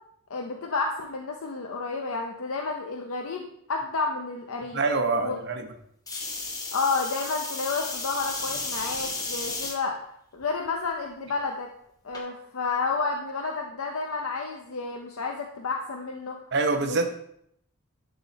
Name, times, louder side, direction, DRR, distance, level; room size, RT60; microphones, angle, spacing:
voice 1, 0.3-4.8 5.2-5.4 6.7-10.0 10.3-11.7 12.0-16.4 16.8-17.0, left 4 dB, 70° left, 2 dB, 0.7 m, -30 dB
voice 2, 4.7-5.7 16.5-17.1, right 3 dB, 50° right, 6 dB, 0.8 m, -25 dB
sound 1, 6.1-9.8 10.4-10.9 12.1-12.2, left 3 dB, 15° left, 0.8 m, -33 dB
11.0 x 3.8 x 4.1 m, 0.72 s
head